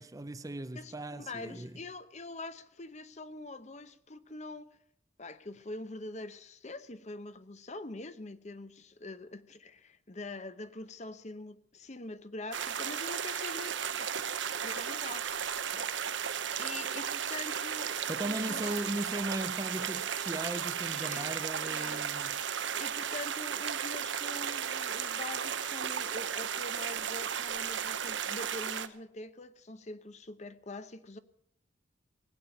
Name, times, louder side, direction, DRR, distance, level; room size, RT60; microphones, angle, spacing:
voice 1, 0.0-1.8 18.1-22.7, right 1 dB, 20° right, 0.5 m, -38 dB
voice 2, 0.7-4.7 5.2-15.3 15.7-16.2 16.6-18.8 20.9-21.3 21.6-22.1 22.8-31.2, left 2 dB, 35° left, 0.8 m, -44 dB
sound 1, 12.5-28.9, right 8 dB, 70° right, 0.9 m, -35 dB
19.5 x 8.8 x 7.8 m
head